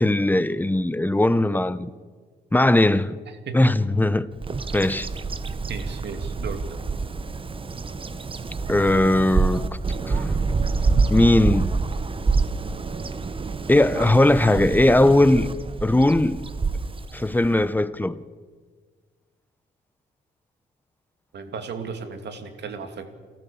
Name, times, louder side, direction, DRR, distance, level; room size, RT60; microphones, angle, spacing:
voice 1, 0.0-1.9 2.5-3.2 3.5-4.3 4.7-5.1 8.7-9.6 10.0-10.3 11.1-11.7 13.7-15.5 15.8-16.4 17.1-18.2, left 1 dB, 10° left, 0.8 m, -19 dB
Bird vocalization bird call bird song, 4.4-17.7, right 4 dB, 25° right, 1.0 m, -27 dB
voice 2, 5.7-6.7 21.3-23.1, right 5 dB, 60° right, 2.6 m, -34 dB
28.0 x 14.0 x 7.1 m
cardioid pair, 90°, 20 cm